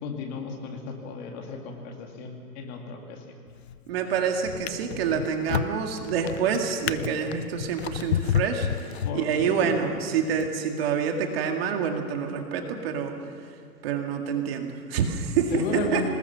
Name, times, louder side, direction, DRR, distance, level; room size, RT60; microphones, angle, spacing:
voice 1, 0.0-3.4 9.0-10.0 15.5-16.1, left 3 dB, 30° left, 2 dB, 2.4 m, -34 dB
Drawer open or close, 3.5-3.9 4.5-9.6 10.3-10.5, left 9 dB, 45° left, 0.5 m, -31 dB
voice 2, 3.9-13.3 13.8-16.1, right 6 dB, 40° right, 4 dB, 2.1 m, -27 dB
25.0 x 20.0 x 5.8 m, 2.2 s
hypercardioid pair, 160°, 48 cm